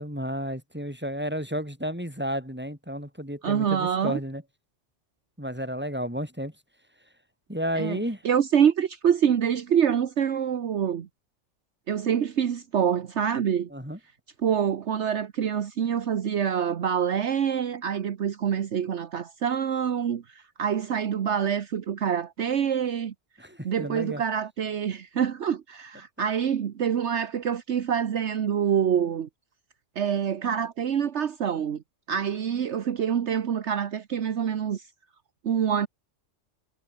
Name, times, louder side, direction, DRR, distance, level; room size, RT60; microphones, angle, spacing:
voice 1, 0.0-4.4 5.4-6.5 7.5-8.2 13.7-14.0 23.4-24.2, equal, 10° right, 7.7 m, -32 dB
voice 2, 3.4-4.2 7.7-11.1 11.9-13.7 14.4-23.1 23.6-29.3 30.0-31.8 32.1-34.9 35.4-35.9, right 8 dB, 65° right, 1.3 m, -26 dB
omnidirectional pair, 1.3 m